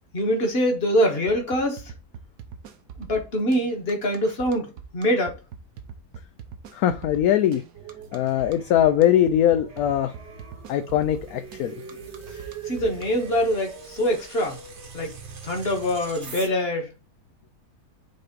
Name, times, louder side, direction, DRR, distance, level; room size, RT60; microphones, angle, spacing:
voice 1, 0.1-1.9 3.0-5.4 12.7-14.6 14.9-15.1 15.4-16.9, equal, 35° left, 1.7 m, -24 dB
sound 1, 1.3-13.0, right 7 dB, 70° right, 1.4 m, -42 dB
voice 2, 6.7-7.6 8.1-10.1 10.7-11.7, left 11 dB, 70° left, 1.0 m, -21 dB
sound 2, 7.7-16.5, right 5 dB, 45° right, 1.3 m, -42 dB
5.6 x 3.7 x 5.2 m
omnidirectional pair, 1.8 m